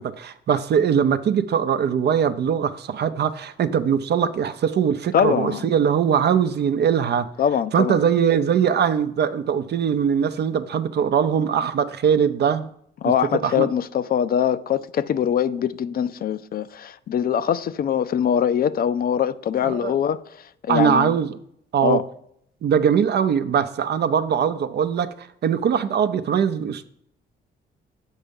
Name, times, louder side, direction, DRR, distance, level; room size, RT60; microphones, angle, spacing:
voice 1, 0.0-7.3 7.7-12.7 13.4-13.7 19.6-20.0 20.7-21.4 21.7-22.1 22.6-26.8, right 7 dB, 55° right, 0.6 m, -21 dB
voice 2, 5.1-5.7 7.4-8.0 13.0-20.2 20.6-21.2 21.8-22.0, left 8 dB, 50° left, 0.4 m, -22 dB
7.3 x 5.5 x 5.3 m
cardioid pair, 90°, 20 cm